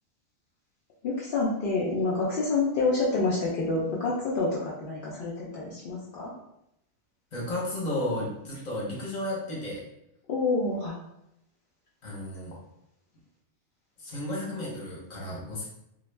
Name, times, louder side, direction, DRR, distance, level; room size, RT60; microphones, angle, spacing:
voice 1, 1.0-6.3 10.3-10.9, left 3 dB, 65° left, -6 dB, 0.5 m, -27 dB
voice 2, 7.3-9.8 12.0-12.5 14.0-15.7, left 1 dB, 40° left, -5 dB, 0.8 m, -33 dB
2.3 x 2.1 x 3.2 m, 0.81 s
omnidirectional pair, 1.4 m